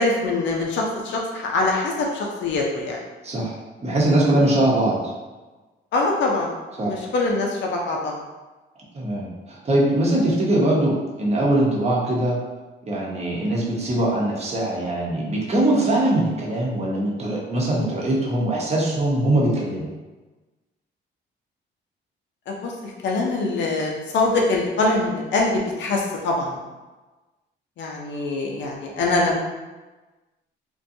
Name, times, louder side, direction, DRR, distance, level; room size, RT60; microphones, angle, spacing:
voice 1, 0.0-3.0 4.4-4.6 5.9-6.5 6.8-8.1 22.5-22.7 23.0-26.6 27.8-29.4, left 2 dB, 65° left, -1 dB, 0.6 m, -23 dB
voice 2, 3.2-3.6 3.8-5.1 6.8-7.0 8.9-12.4 12.9-19.9, right 1 dB, 30° right, -4 dB, 0.8 m, -22 dB
2.5 x 2.2 x 2.6 m, 1.2 s
cardioid pair, 90°, 20 cm